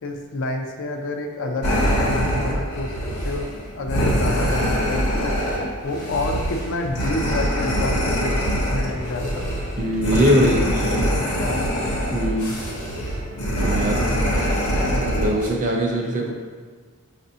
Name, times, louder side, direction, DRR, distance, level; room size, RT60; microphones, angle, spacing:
voice 1, 0.0-2.9 3.2-5.4 5.8-9.5 10.4-10.8 11.1-11.6 13.8-14.2, left 2 dB, 60° left, 3 dB, 0.4 m, -29 dB
sound 1, 1.6-15.5, equal, 90° left, 0.8 m, -24 dB
sound 2, 5.8-15.2, right 1 dB, 85° right, 0.9 m, -40 dB
voice 2, 9.8-10.6 10.9-11.0 12.1-12.6 13.6-14.0 14.9-16.3, equal, 35° right, 0 dB, 0.6 m, -21 dB
5.4 x 2.6 x 2.7 m, 1.5 s
head